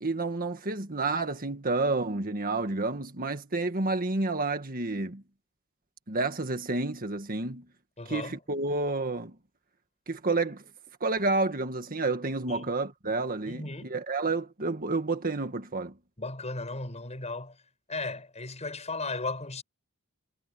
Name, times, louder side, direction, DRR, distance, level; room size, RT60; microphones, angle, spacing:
voice 1, 0.0-5.2 6.1-7.7 8.1-9.4 10.1-10.6 11.0-15.9, right 3 dB, 40° right, 1.8 m, -30 dB
voice 2, 8.0-8.4 12.5-12.7 13.5-13.9 16.2-17.6 17.9-19.6, left 3 dB, 30° left, 6.5 m, -36 dB
head